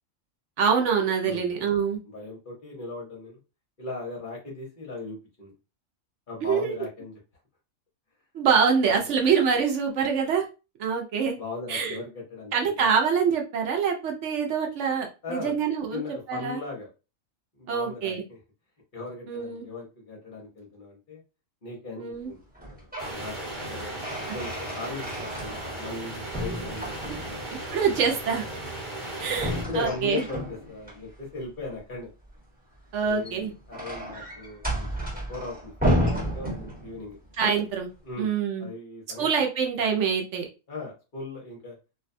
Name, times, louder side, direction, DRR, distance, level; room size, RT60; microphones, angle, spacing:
voice 1, 0.6-2.0 6.4-6.8 8.3-10.4 10.8-11.3 11.7-12.0 12.5-16.0 16.3-16.6 17.7-18.2 19.3-19.7 22.0-22.3 27.1-27.2 27.7-28.4 29.2-30.2 32.9-33.5 37.4-37.9 38.2-38.7 39.2-40.4, right 6 dB, 70° right, 2 dB, 0.9 m, -25 dB
voice 2, 2.0-3.4 3.8-5.5 6.3-7.2 11.3-12.9 15.2-15.6 15.9-16.9 17.5-18.4 18.9-21.2 21.6-22.4 22.7-22.8 23.1-23.9 24.3-27.4 28.5-28.6 29.2-29.3 29.7-30.4 30.7-32.1 33.0-37.2 38.0-38.3 38.6-39.3 40.7-41.7, left 3 dB, 45° left, -2 dB, 0.9 m, -38 dB
sound 1, 22.5-23.2 23.6-26.0 26.3-27.5 29.3-31.0 33.0-37.1, equal, 5° right, 1.1 m, -31 dB
sound 2, 23.0-29.6, right 1 dB, 40° right, 1.2 m, -36 dB
2.5 x 2.2 x 2.5 m, 0.30 s
omnidirectional pair, 1.4 m